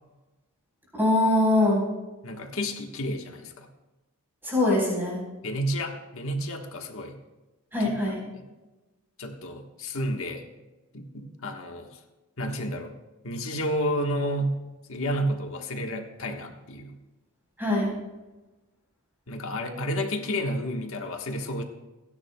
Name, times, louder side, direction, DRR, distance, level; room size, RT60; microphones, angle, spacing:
voice 1, 1.0-1.8 4.4-5.2 7.7-8.2 17.6-17.9, left 1 dB, 10° right, -4 dB, 4.1 m, -22 dB
voice 2, 2.2-3.7 5.4-7.2 9.2-10.4 10.9-12.0 12.4-12.9 13.2-14.6 14.9-17.0 19.3-21.6, equal, 65° left, 3 dB, 1.4 m, -31 dB
29.5 x 10.0 x 2.3 m, 1.1 s
head